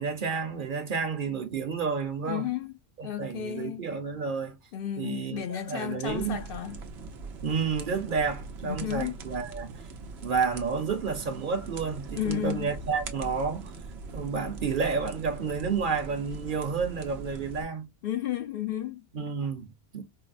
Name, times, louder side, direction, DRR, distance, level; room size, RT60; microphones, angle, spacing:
voice 1, 0.0-2.5 3.0-4.6 5.0-6.4 7.4-9.7 10.2-13.7 14.1-17.9 19.1-20.0, right 5 dB, 55° right, 0.9 m, -30 dB
voice 2, 2.2-2.7 3.0-3.9 4.7-6.8 8.6-9.1 12.2-12.7 18.0-19.0, left 11 dB, 65° left, 0.7 m, -33 dB
sound 1, 6.1-17.6, right 4 dB, 80° right, 1.0 m, -41 dB
4.6 x 2.1 x 2.4 m
omnidirectional pair, 1.1 m